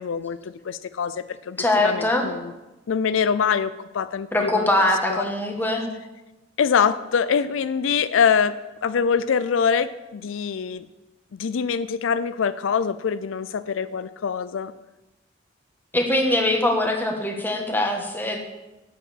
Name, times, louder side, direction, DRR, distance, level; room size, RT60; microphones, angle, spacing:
voice 1, 0.0-1.6 1.8-2.5 2.9-4.7 5.1-5.3 6.6-10.8 11.4-14.7, left 6 dB, 80° left, 13 dB, 0.4 m, -24 dB
voice 2, 1.6-2.3 4.3-5.9 15.9-18.4, left 1 dB, 10° left, 2 dB, 1.5 m, -22 dB
7.9 x 7.7 x 7.8 m, 1.0 s
head